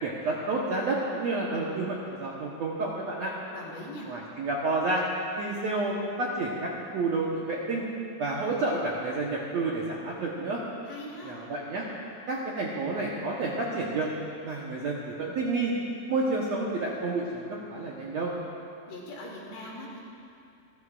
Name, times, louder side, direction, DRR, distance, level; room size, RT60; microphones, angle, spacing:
voice 1, 0.0-3.3 4.1-5.0 5.4-7.8 8.2-10.6 11.2-11.8 12.3-14.1 14.4-15.7 16.1-18.3, right 3 dB, 65° right, -4 dB, 1.7 m, -30 dB
voice 2, 3.5-4.1 10.8-11.4 18.8-20.0, left 1 dB, 75° left, -4 dB, 4.5 m, -41 dB
28.5 x 13.0 x 2.5 m, 2.5 s
omnidirectional pair, 4.5 m